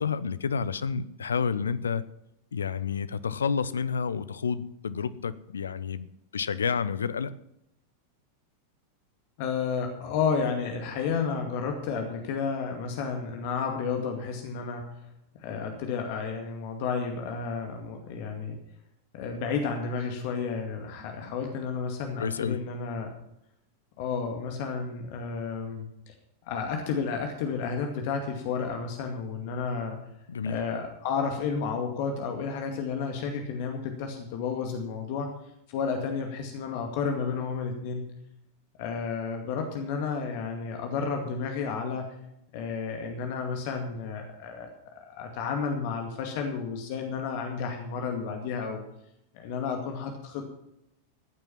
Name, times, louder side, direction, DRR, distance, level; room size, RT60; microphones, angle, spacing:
voice 1, 0.0-2.0 2.5-6.1 6.3-7.3 22.2-22.6 30.3-30.6, left 6 dB, 70° left, 15 dB, 0.7 m, -29 dB
voice 2, 9.4-14.8 15.3-18.6 19.1-23.1 24.0-26.1 26.5-30.0 30.4-35.3 35.7-38.1 38.8-42.1 42.5-48.8 49.3-50.5, left 5 dB, 50° left, 3 dB, 2.1 m, -31 dB
15.0 x 9.1 x 5.9 m, 0.81 s
figure-of-eight pair, 90°, 0 cm